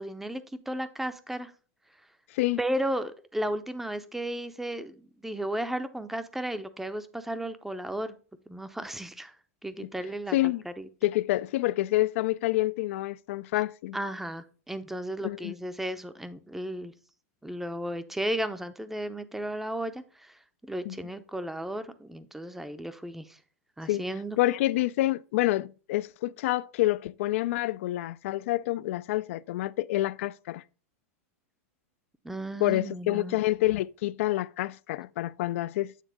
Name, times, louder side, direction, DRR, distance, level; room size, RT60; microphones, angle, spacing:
voice 1, 0.0-1.5 2.6-8.2 8.5-9.3 9.6-10.9 13.5-13.6 13.9-16.9 17.4-23.4 23.8-24.4 32.2-33.4, right 1 dB, 5° right, 0.5 m, -34 dB
voice 2, 10.3-10.6 11.0-14.0 15.2-15.5 20.9-21.0 23.9-24.0 24.4-30.6 32.6-35.9, left 16 dB, 65° left, 0.3 m, -27 dB
9.2 x 3.6 x 4.8 m
supercardioid pair, 140°, 8 cm